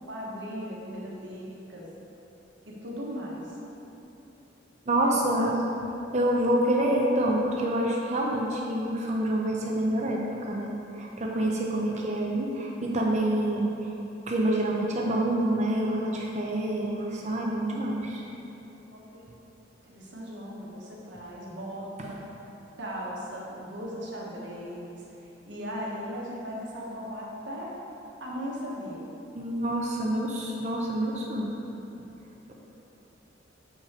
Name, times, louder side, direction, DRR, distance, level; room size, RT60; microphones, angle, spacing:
voice 1, 0.1-1.9 2.7-3.4 5.0-5.5 18.9-19.2 19.8-22.2 22.8-25.0 25.4-27.7 28.2-29.1, equal, 70° right, -4 dB, 1.3 m, -37 dB
voice 2, 4.9-5.5 6.1-13.9 14.3-18.2 29.3-31.6, right 1 dB, 40° right, -2 dB, 0.6 m, -27 dB
7.2 x 4.8 x 4.4 m, 3.0 s
head